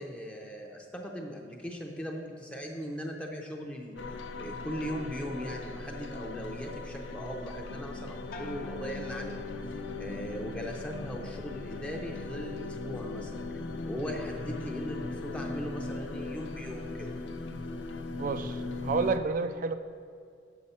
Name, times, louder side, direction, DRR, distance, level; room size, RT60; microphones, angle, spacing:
voice 1, 0.0-4.0 4.4-9.4 10.0-13.4 13.9-17.2, equal, 5° left, 0 dB, 0.6 m, -39 dB
sound 1, 4.0-19.2, left 3 dB, 85° left, 0.5 m, -39 dB
sound 2, 8.3-10.0 10.4-11.0, left 2 dB, 55° left, 0.8 m, -49 dB
voice 2, 18.2-19.7, right 4 dB, 50° right, 10 dB, 0.4 m, -30 dB
7.3 x 6.8 x 4.2 m, 2.2 s
head